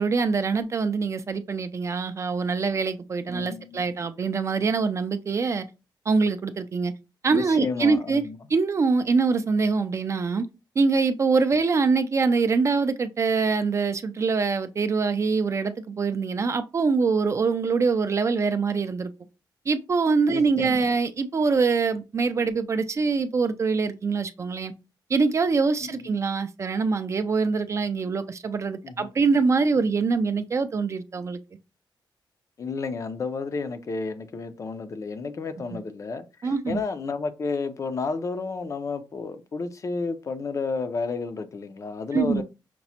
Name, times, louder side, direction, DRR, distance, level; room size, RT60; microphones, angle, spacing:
voice 1, 0.0-5.6 6.1-6.9 7.2-8.2 8.5-10.5 10.8-19.1 19.7-24.7 25.1-31.4 36.4-36.8 42.1-42.4, right 4 dB, 35° right, 0.3 m, -24 dB
voice 2, 3.3-3.9 7.3-8.4 20.3-20.9 25.8-25.9 28.8-29.1 32.6-42.4, left 4 dB, 40° left, 0.4 m, -31 dB
5.8 x 2.0 x 2.8 m
wide cardioid pair, 145°, 8 cm